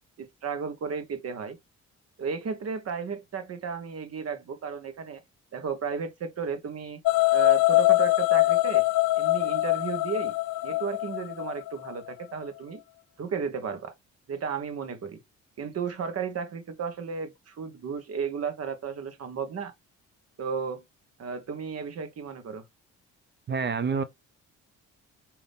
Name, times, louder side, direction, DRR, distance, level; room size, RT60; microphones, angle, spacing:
voice 1, 0.2-1.6 2.2-5.2 5.5-7.0 7.3-8.8 9.2-10.3 10.6-12.8 13.2-13.9 14.3-15.2 15.6-19.7 20.4-20.8 21.2-22.6, right 6 dB, 55° right, 1.3 m, -34 dB
sound 1, 7.0-12.1, left 18 dB, 80° left, 0.4 m, -23 dB
voice 2, 23.5-24.0, right 5 dB, 35° right, 0.7 m, -27 dB
5.2 x 3.0 x 3.5 m
cardioid pair, 90°, 30 cm